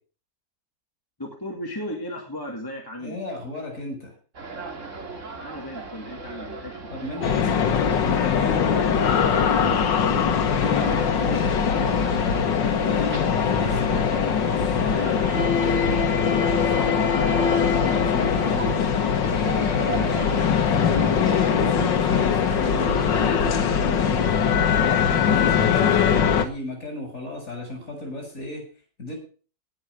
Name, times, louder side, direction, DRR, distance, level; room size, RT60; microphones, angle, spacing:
voice 1, 1.2-3.2 5.4-6.9 9.5-10.3 10.7-12.0 19.9-20.3, left 1 dB, 10° left, 0 dB, 2.4 m, -36 dB
voice 2, 3.0-4.1 6.9-8.6 10.6-11.6 12.6-17.0 17.6-18.7 19.4-20.2 20.6-24.2 24.8-28.6 29.0-29.2, left 2 dB, 45° left, 2 dB, 7.9 m, -36 dB
sound 1, 4.3-23.4, right 4 dB, 45° right, 2.3 m, -38 dB
sound 2, 7.2-26.5, left 7 dB, 90° left, 1.9 m, -21 dB
19.0 x 6.5 x 6.4 m, 0.39 s
omnidirectional pair, 1.9 m